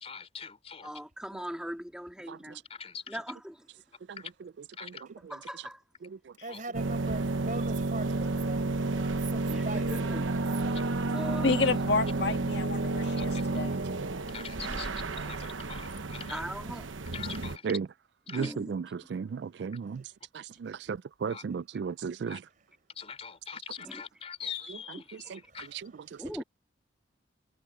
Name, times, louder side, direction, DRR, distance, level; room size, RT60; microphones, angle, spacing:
voice 1, 0.0-0.9 2.7-3.2 4.2-4.3 4.8-5.0 6.5-6.6 13.2-13.4 14.3-14.9 15.2-16.4 17.1-17.8 18.3-18.5 21.3-21.4 22.3-22.4 23.0-25.7, left 7 dB, 30° left, 3.6 m, -43 dB
voice 2, 0.8-2.6 3.1-3.5 5.3-5.8 9.5-10.3 11.0-11.6 14.6-14.8 16.3-16.9 18.3-18.8 23.8-24.0 26.2-26.4, equal, 5° right, 1.9 m, -40 dB
voice 3, 6.4-10.8 19.9-20.0 22.6-22.7 25.5-26.3, right 3 dB, 40° right, 4.7 m, -42 dB
sound 1, 6.7-17.6, right 2 dB, 90° right, 1.1 m, -31 dB
voice 4, 11.4-13.7, left 3 dB, 60° left, 1.9 m, -29 dB
voice 5, 18.3-20.0 20.3-22.4 25.3-25.4 25.7-25.8, right 6 dB, 60° right, 0.3 m, -34 dB
head